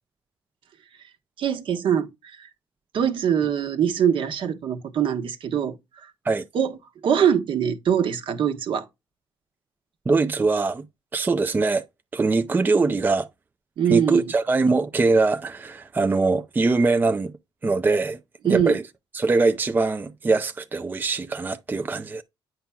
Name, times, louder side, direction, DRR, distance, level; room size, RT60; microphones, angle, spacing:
voice 1, 1.4-2.5 2.9-5.8 6.0-6.1 6.5-6.7 7.0-8.9 13.8-14.2 18.4-18.7, right 8 dB, 60° right, 1.2 m, -23 dB
voice 2, 10.1-10.9 11.1-11.8 12.1-13.3 13.8-17.3 17.6-18.2 18.5-18.8 19.1-22.2, right 3 dB, 20° right, 0.5 m, -22 dB
8.8 x 5.7 x 2.3 m
cardioid pair, 95°, 10 cm